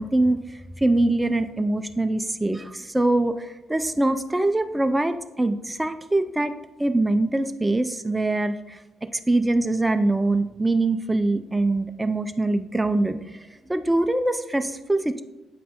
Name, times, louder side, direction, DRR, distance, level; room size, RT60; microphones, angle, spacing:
voice 1, 0.0-6.5 6.8-8.8 9.1-15.2, right 2 dB, 10° right, 8 dB, 0.3 m, -23 dB
7.7 x 5.3 x 2.9 m, 1.1 s
cardioid pair, 90°, 0 cm